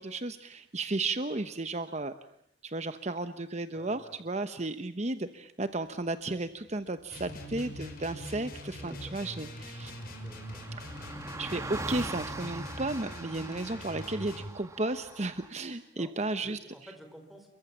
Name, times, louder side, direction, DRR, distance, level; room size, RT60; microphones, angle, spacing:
voice 1, 0.0-2.1 2.6-9.9 11.4-16.6, right 2 dB, 35° right, 10 dB, 1.0 m, -34 dB
voice 2, 3.7-4.2 8.8-9.4 10.2-10.7 16.0-16.1 16.4-17.5, equal, ahead, 4 dB, 4.8 m, -51 dB
sound 1, 7.1-14.5, left 1 dB, 50° left, 5.8 m, -42 dB
Car passing by, 8.6-15.5, right 2 dB, 15° right, 1.3 m, -43 dB
29.5 x 23.5 x 7.3 m, 0.72 s
head